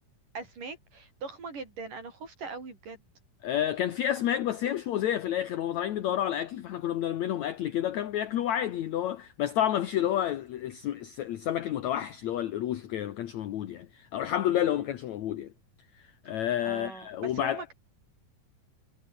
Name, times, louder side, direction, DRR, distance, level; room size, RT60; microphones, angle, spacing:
voice 1, 0.3-3.0 14.6-14.9 16.6-17.7, right 4 dB, 65° right, 8.1 m, -41 dB
voice 2, 3.4-15.5 16.3-17.6, left 11 dB, 65° left, 2.3 m, -30 dB
omnidirectional pair, 4.0 m